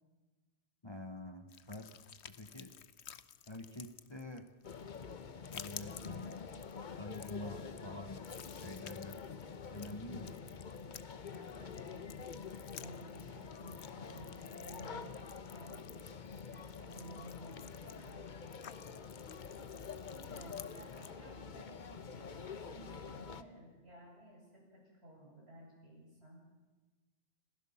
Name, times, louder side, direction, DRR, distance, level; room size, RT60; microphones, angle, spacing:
voice 1, 0.8-1.9 2.2-2.7 3.5-4.5 5.5-6.4 7.0-8.2 8.5-9.3 9.7-10.4, left 1 dB, 25° left, 7 dB, 1.1 m, -47 dB
sound 1, 1.5-21.1, left 9 dB, 70° left, 1.1 m, -54 dB
sound 2, 4.6-23.4, left 6 dB, 45° left, 1.0 m, -47 dB
voice 2, 11.3-12.3 12.8-15.2 15.5-18.3 20.3-26.5, right 1 dB, 60° right, -3 dB, 8.0 m, -55 dB
27.5 x 15.5 x 7.1 m, 1.3 s
omnidirectional pair, 1.2 m